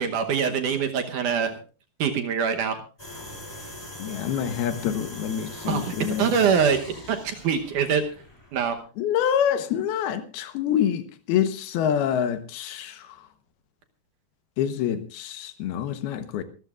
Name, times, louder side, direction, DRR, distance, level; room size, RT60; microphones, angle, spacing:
voice 1, 0.0-1.5 2.0-2.8 5.7-6.8 7.1-8.0 8.5-8.8, right 6 dB, 65° right, 2.2 m, -24 dB
sound 1, 3.0-8.8, left 1 dB, 5° left, 2.4 m, -41 dB
voice 2, 4.0-6.3 9.0-11.0 11.3-13.1 14.6-16.4, left 9 dB, 80° left, 3.0 m, -26 dB
25.0 x 13.5 x 2.5 m
omnidirectional pair, 4.5 m